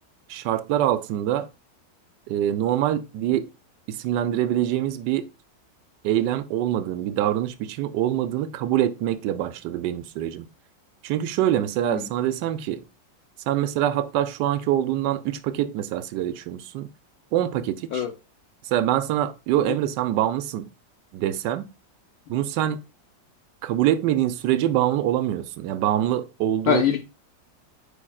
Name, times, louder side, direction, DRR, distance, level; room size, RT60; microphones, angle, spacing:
voice 1, 0.3-1.5 2.3-3.5 3.9-5.3 6.0-10.5 11.0-12.8 13.5-16.9 17.3-18.0 18.7-20.7 21.1-21.7 22.3-22.8 23.6-26.8, right 12 dB, 75° right, 1.2 m, -24 dB
voice 2, 26.7-27.0, left 8 dB, 70° left, 1.0 m, -23 dB
8.6 x 4.9 x 2.3 m
omnidirectional pair, 1.9 m